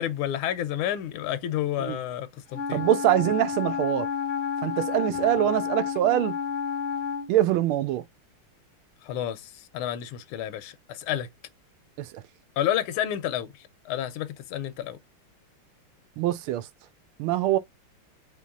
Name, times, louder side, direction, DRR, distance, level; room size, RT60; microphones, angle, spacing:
voice 1, 0.0-2.8 9.0-11.3 12.6-13.5 13.8-15.0, left 11 dB, 85° left, 1.4 m, -30 dB
Wind instrument woodwind instrument, 2.5-7.3, left 7 dB, 60° left, 0.9 m, -30 dB
voice 2, 2.7-4.1 4.6-6.3 7.3-8.0 12.0-12.2 16.2-16.7 17.2-17.6, right 12 dB, 85° right, 1.5 m, -24 dB
5.2 x 3.3 x 2.3 m
omnidirectional pair, 2.3 m